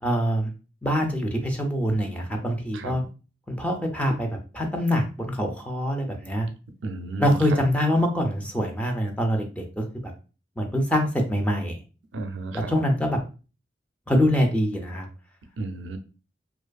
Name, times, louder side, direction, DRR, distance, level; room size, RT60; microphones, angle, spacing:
voice 1, 0.0-0.5 0.8-3.0 3.5-6.5 7.2-10.1 10.6-11.8 12.5-13.2 14.1-15.1, equal, 5° left, 3 dB, 0.3 m, -24 dB
voice 2, 2.7-3.1 6.8-7.4 12.1-12.7 15.6-16.0, right 2 dB, 75° right, 7 dB, 0.4 m, -33 dB
2.5 x 2.4 x 2.2 m, 0.35 s
head